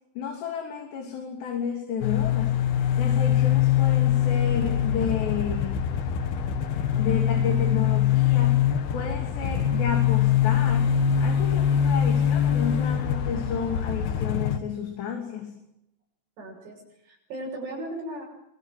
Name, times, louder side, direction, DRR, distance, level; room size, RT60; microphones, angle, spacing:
voice 1, 0.2-2.6 3.0-5.8 7.0-8.6 8.9-10.9 11.2-15.6, left 7 dB, 85° left, 2 dB, 5.2 m, -31 dB
sound 1, 2.0-14.6, left 9 dB, 65° left, 3.6 m, -23 dB
voice 2, 16.4-18.2, right 1 dB, 80° right, -5 dB, 9.0 m, -37 dB
26.0 x 25.0 x 7.7 m, 0.84 s
omnidirectional pair, 4.8 m